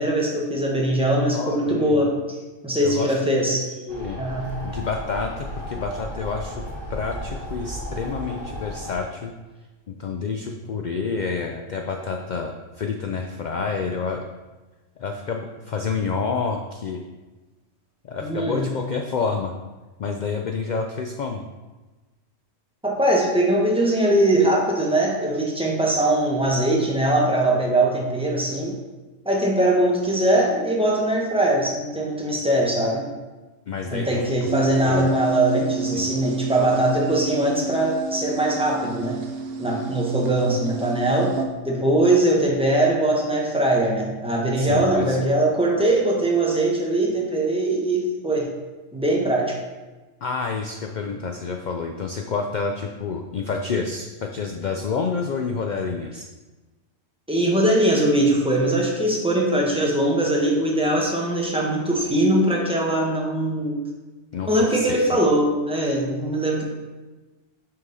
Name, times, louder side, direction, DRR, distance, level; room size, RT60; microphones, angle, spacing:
voice 1, 0.0-2.4 2.6-3.7 4.2-4.6 18.2-18.7 22.8-28.8 29.2-33.0 33.9-39.2 39.6-41.4 41.6-48.5 48.9-49.6 57.3-63.8 64.4-66.6, right 1 dB, 5° right, -2 dB, 0.9 m, -21 dB
voice 2, 1.3-2.2 2.8-3.4 3.8-4.2 4.6-9.3 9.9-14.3 15.0-17.0 18.0-19.5 20.0-21.4 33.7-34.5 34.8-35.2 35.9-36.1 44.6-45.2 50.2-56.3 64.3-65.2, left 5 dB, 80° left, 3 dB, 0.4 m, -29 dB
sound 1, 3.9-8.9, equal, 75° right, 2.2 m, -34 dB
sound 2, 34.5-41.4, right 4 dB, 60° right, 0.8 m, -30 dB
5.8 x 4.7 x 3.9 m, 1.2 s
omnidirectional pair, 1.3 m